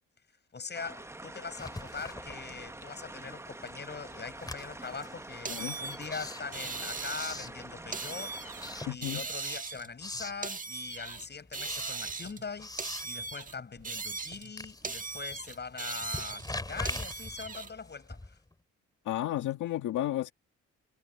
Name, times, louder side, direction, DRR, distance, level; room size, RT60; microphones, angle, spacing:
voice 1, 0.5-8.4 8.9-18.4, left 5 dB, 35° left, 7.9 m, -42 dB
sound 1, 0.7-9.0, right 2 dB, 10° right, 1.0 m, -46 dB
Writing, 1.4-3.0 3.3-8.1 8.5-9.5 9.8-10.5 10.9-18.5, left 2 dB, 15° left, 2.6 m, -43 dB
voice 2, 5.5-5.8 8.9-9.2 19.1-20.3, left 13 dB, 80° left, 2.0 m, -32 dB
sound 2, 5.5-7.5 7.9-8.7 9.0-11.3 11.5-12.5 12.8-14.5 14.8-17.7, right 4 dB, 25° right, 1.4 m, -39 dB
cardioid pair, 90°, 30 cm